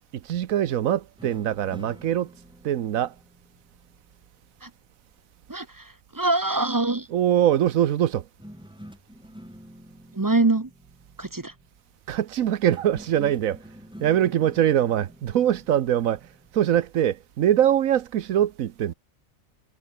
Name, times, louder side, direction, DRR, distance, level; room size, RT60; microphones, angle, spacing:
voice 1, 0.3-2.3 2.6-3.1 7.1-8.2 12.1-13.6 14.0-16.2 16.5-18.9, right 11 dB, 80° right, 1.2 m, -23 dB
sound 1, 1.2-4.6 8.4-11.8 12.7-16.6, equal, 5° right, 7.8 m, -47 dB
voice 2, 5.5-7.1 10.1-10.7 11.2-11.5, right 2 dB, 20° right, 0.7 m, -24 dB
omnidirectional pair, 1.4 m